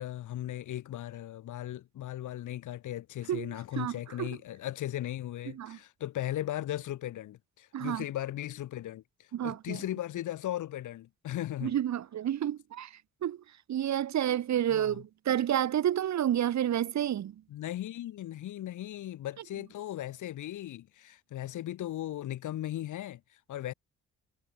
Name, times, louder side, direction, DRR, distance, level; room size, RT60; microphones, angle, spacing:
voice 1, 0.0-11.8 14.7-15.0 17.5-23.7, left 13 dB, 80° left, 6.0 m, -37 dB
voice 2, 7.7-8.0 9.3-9.8 11.6-12.9 13.2-13.4 13.7-17.3, right 11 dB, 65° right, 2.6 m, -29 dB
cardioid pair, 90°, 30 cm